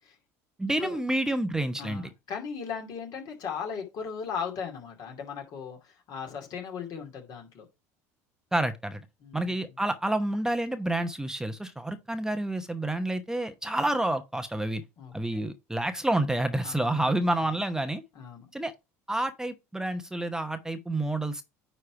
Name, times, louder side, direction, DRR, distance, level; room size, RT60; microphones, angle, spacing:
voice 1, 0.6-2.1 8.5-9.0 9.3-14.8 15.1-18.0 18.5-18.7 19.1-21.4, right 1 dB, 5° right, 0.8 m, -29 dB
voice 2, 1.8-7.7 9.2-9.6 15.0-15.4 16.6-17.1 17.4-17.6 18.1-18.5, left 6 dB, 55° left, 2.5 m, -37 dB
9.6 x 3.3 x 4.8 m
hypercardioid pair, 75°, 8 cm